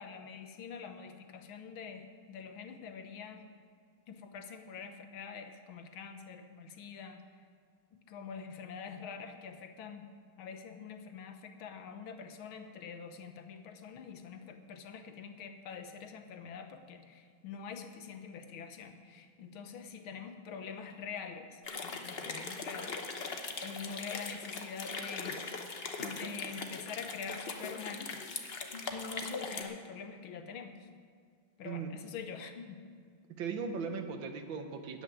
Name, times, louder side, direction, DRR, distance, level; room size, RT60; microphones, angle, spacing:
voice 1, 0.0-3.4 4.1-7.2 8.1-10.1 10.4-25.4 26.0-28.3 28.9-30.9 31.6-32.8, left 6 dB, 85° left, 7 dB, 1.8 m, -45 dB
sound 1, 21.6-29.6, left 4 dB, 40° left, 0.9 m, -40 dB
voice 2, 33.3-35.0, right 5 dB, 75° right, 7 dB, 1.7 m, -38 dB
13.5 x 6.4 x 9.4 m, 2.1 s
omnidirectional pair, 2.2 m